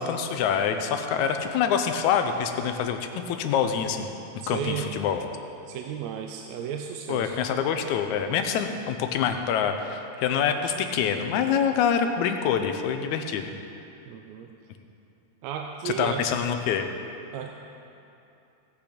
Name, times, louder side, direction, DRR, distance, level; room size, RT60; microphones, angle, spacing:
voice 1, 0.0-3.0 3.3-4.1 4.5-5.2 7.1-13.5 15.9-16.9, left 7 dB, 85° left, 6 dB, 2.1 m, -26 dB
voice 2, 4.4-4.9 5.7-7.4 14.1-14.5 15.4-16.3 17.3-17.5, right 9 dB, 80° right, 3 dB, 1.8 m, -33 dB
16.5 x 8.4 x 5.1 m, 2.8 s
omnidirectional pair, 3.4 m